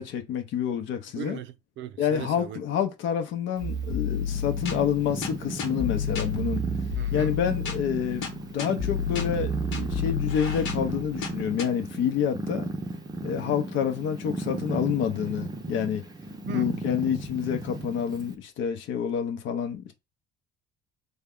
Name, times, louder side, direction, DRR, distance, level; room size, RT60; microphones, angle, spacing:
voice 1, 0.0-1.4 2.0-6.6 7.1-12.7 13.2-16.0 16.5-19.9, left 8 dB, 70° left, 0.7 m, -28 dB
voice 2, 1.2-2.6 7.0-7.4 16.4-16.8, right 9 dB, 65° right, 0.5 m, -38 dB
sound 1, 3.6-11.6, left 4 dB, 85° left, 1.1 m, -31 dB
Purr, 3.6-18.4, right 2 dB, 20° right, 0.5 m, -35 dB
3.5 x 2.2 x 3.6 m
cardioid pair, 110°, 21 cm